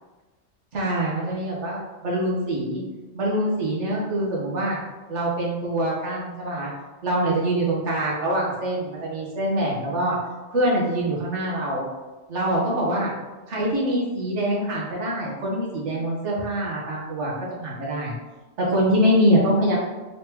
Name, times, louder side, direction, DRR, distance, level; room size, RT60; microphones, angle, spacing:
voice 1, 0.7-2.8 3.1-4.8 5.1-6.7 7.0-10.2 10.5-11.9 12.3-13.1 13.5-17.3 17.6-18.1 18.7-19.8, right 1 dB, 80° right, -4 dB, 1.4 m, -24 dB
4.0 x 3.5 x 2.9 m, 1.2 s
omnidirectional pair, 1.2 m